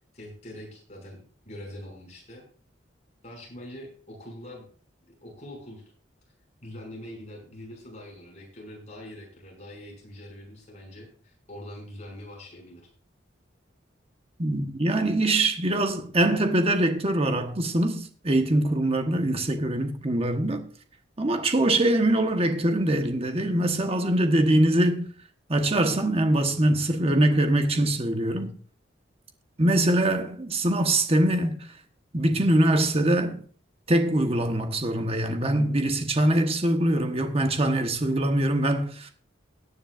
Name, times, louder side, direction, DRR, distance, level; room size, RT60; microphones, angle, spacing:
voice 1, 0.0-2.4 3.2-4.7 5.2-5.9 6.6-12.8, left 1 dB, 35° left, 6.2 m, -43 dB
voice 2, 14.4-20.6 21.2-25.1 25.5-28.5 29.6-31.7 32.1-33.4 33.9-39.1, right 1 dB, 30° right, 1.2 m, -23 dB
17.5 x 10.0 x 2.5 m
head